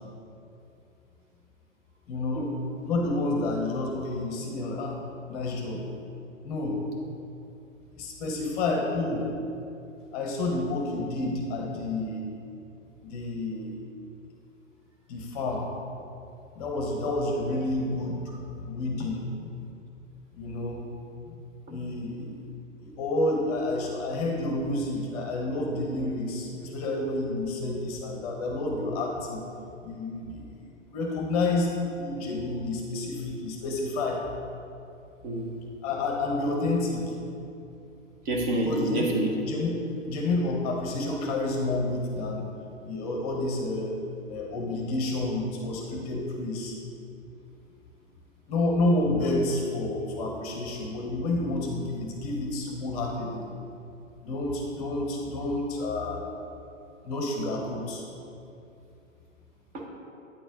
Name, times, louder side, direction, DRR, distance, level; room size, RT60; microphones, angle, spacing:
voice 1, 2.1-2.5 2.8-5.0 5.3-5.8 6.4-6.8 8.0-9.3 10.1-12.2 13.0-13.8 15.1-15.7 16.0-16.1 16.5-18.2 18.6-19.5 20.3-20.9 21.3-21.4 21.7-22.5 22.8-29.4 29.8-30.4 30.9-34.2 35.8-37.1 38.6-39.1 39.4-39.7 40.1-42.5 42.9-44.0 44.3-46.8 48.5-53.5 54.2-56.3 57.0-58.0, left 2 dB, 30° left, 1 dB, 0.8 m, -29 dB
voice 2, 35.2-35.6 38.2-39.3 59.7-59.9, right 2 dB, 30° right, -1 dB, 0.9 m, -28 dB
8.8 x 4.1 x 3.9 m, 2.7 s
figure-of-eight pair, 110°, 39 cm